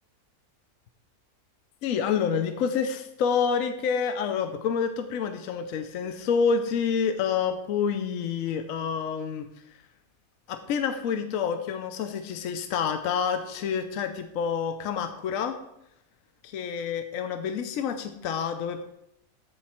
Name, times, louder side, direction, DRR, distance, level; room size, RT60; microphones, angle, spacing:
voice 1, 1.8-9.5 10.5-15.6 16.4-18.8, left 6 dB, 65° left, 8 dB, 1.0 m, -28 dB
14.0 x 4.7 x 4.2 m, 0.80 s
omnidirectional pair, 1.6 m